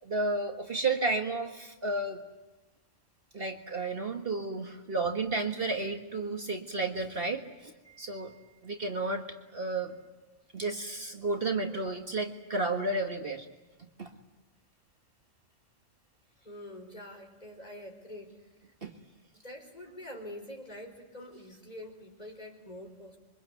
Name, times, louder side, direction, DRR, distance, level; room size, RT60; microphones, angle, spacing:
voice 1, 0.0-2.2 3.3-7.7 8.0-8.3 8.6-10.0 10.5-13.5 14.0-14.1 18.8-18.9, right 3 dB, 50° right, 3 dB, 1.8 m, -32 dB
voice 2, 7.8-8.8 11.7-11.9 16.4-18.7 19.4-23.2, left 1 dB, 30° left, 2 dB, 5.1 m, -46 dB
27.0 x 24.0 x 8.2 m, 1.1 s
omnidirectional pair, 1.3 m